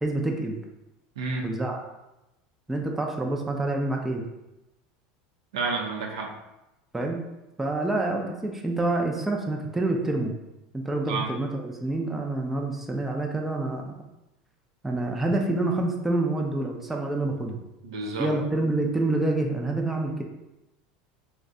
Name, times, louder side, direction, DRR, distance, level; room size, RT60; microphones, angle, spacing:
voice 1, 0.0-0.6 1.4-1.8 2.7-4.3 6.9-7.2 7.6-10.3 10.7-13.9 14.8-17.6 18.2-20.2, right 2 dB, 10° right, 1 dB, 0.4 m, -27 dB
voice 2, 1.2-1.5 5.5-6.3 11.1-11.3 17.8-18.3, right 4 dB, 90° right, 1 dB, 0.5 m, -30 dB
2.5 x 2.1 x 3.6 m, 0.95 s
supercardioid pair, 110°, 3 cm